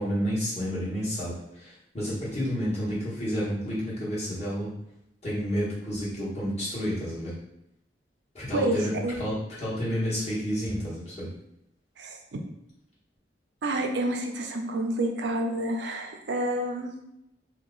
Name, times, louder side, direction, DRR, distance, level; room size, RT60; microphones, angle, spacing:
voice 1, 0.0-4.7 5.2-7.3 8.3-8.9 9.2-11.3, equal, 35° left, -8 dB, 1.3 m, -30 dB
voice 2, 8.5-9.1 12.0-12.2 13.6-16.9, right 1 dB, 80° right, 4 dB, 0.5 m, -29 dB
2.8 x 2.3 x 3.8 m, 0.82 s
head